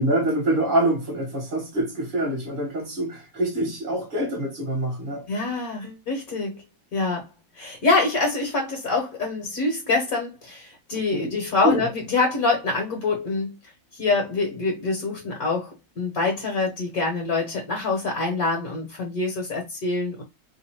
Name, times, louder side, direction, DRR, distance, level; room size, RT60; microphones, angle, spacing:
voice 1, 0.0-5.3 11.1-11.4 11.6-11.9, right 1 dB, 30° right, 1.3 m, -25 dB
voice 2, 5.3-6.6 6.9-7.3 7.5-13.6 13.9-20.2, left 3 dB, 55° left, 1.5 m, -25 dB
3.1 x 2.6 x 4.2 m
omnidirectional pair, 2.0 m